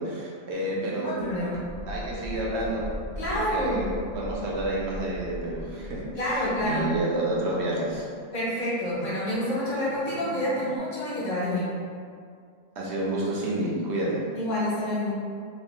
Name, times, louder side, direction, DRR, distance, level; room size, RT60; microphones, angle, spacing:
voice 1, 0.0-1.1 1.8-2.9 3.3-8.1 9.0-9.1 12.8-14.2, right 1 dB, 70° right, -5 dB, 1.0 m, -30 dB
sound 1, 0.5-10.8, right 1 dB, 65° left, 1.3 m, -40 dB
voice 2, 1.0-1.6 3.2-4.0 6.2-6.9 8.3-11.7 14.3-15.1, left 1 dB, 85° left, -9 dB, 1.5 m, -28 dB
3.1 x 2.3 x 3.6 m, 2.2 s
omnidirectional pair, 1.2 m